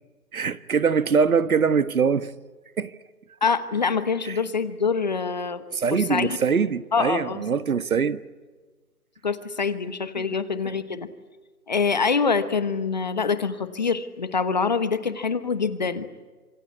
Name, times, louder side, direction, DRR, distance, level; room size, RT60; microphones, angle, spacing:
voice 1, 0.3-2.3 2.8-2.9 4.3-4.4 5.7-8.2 10.2-10.3, right 6 dB, 65° right, 1.4 m, -23 dB
voice 2, 3.4-5.6 5.9-6.4 6.9-7.4 9.2-11.1 11.7-16.1, left 5 dB, 30° left, 1.1 m, -25 dB
27.0 x 24.0 x 8.4 m
hypercardioid pair, 170°, 47 cm